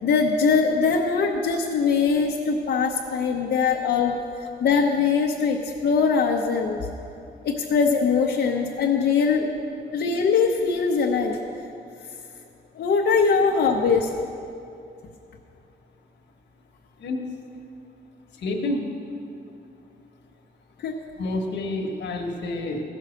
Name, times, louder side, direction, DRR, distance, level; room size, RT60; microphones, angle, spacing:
voice 1, 0.0-4.2 4.6-6.9 7.4-9.5 9.9-11.4 12.8-14.1 20.8-20.9, left 5 dB, 75° left, -1 dB, 0.8 m, -22 dB
voice 2, 18.4-18.8 21.2-22.8, left 2 dB, 90° left, 1 dB, 1.2 m, -28 dB
15.5 x 5.5 x 6.3 m, 2.6 s
wide cardioid pair, 150°, 18 cm